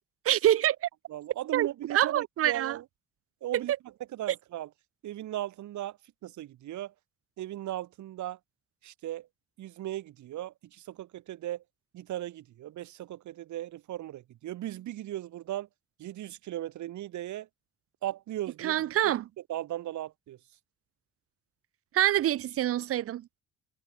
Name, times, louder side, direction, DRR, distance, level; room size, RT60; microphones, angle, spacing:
voice 1, 0.3-0.9 1.5-2.8 3.5-3.6 18.6-19.2 21.9-23.4, right 12 dB, 50° right, 0.5 m, -26 dB
voice 2, 1.1-2.8 3.4-3.7 4.1-4.7 5.0-6.0 6.2-6.9 7.4-8.4 8.8-9.3 9.6-11.6 11.9-15.7 16.0-17.5 18.0-18.8 19.0-19.1 19.5-20.4, right 13 dB, 70° right, 1.2 m, -37 dB
cardioid pair, 90°, 30 cm